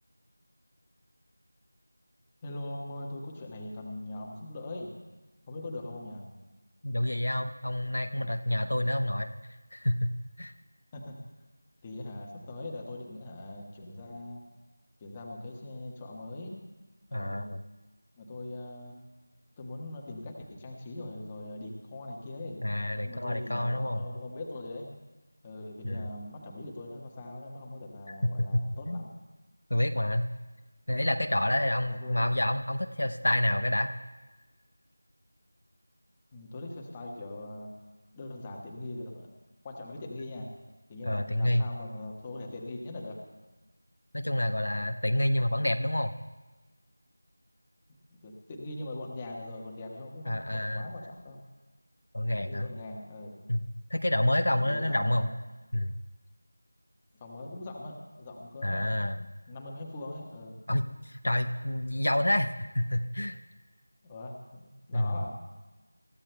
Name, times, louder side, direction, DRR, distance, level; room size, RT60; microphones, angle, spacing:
voice 1, 2.4-4.9 5.5-6.3 10.9-11.2 11.8-14.4 15.0-16.6 17.1-17.5 18.1-19.0 19.6-22.6 23.0-24.9 25.4-29.1 31.9-32.3 36.3-37.7 38.1-39.4 39.6-40.5 40.9-43.2 48.1-51.4 52.4-53.4 54.6-55.3 57.2-58.9 59.5-60.6 64.0-65.3, left 2 dB, 15° left, -1 dB, 1.4 m, -41 dB
voice 2, 6.8-9.3 9.7-10.1 10.4-10.5 17.1-17.6 22.6-24.0 25.8-26.0 28.2-29.0 29.7-30.3 30.9-33.9 41.0-41.7 44.1-46.1 50.3-50.9 52.1-52.7 53.5-53.6 53.9-55.3 55.7-55.9 58.6-59.2 60.7-63.4 64.9-65.1, left 1 dB, 70° left, 7 dB, 0.9 m, -28 dB
27.5 x 15.0 x 2.3 m, 1.2 s
figure-of-eight pair, 175°, 0 cm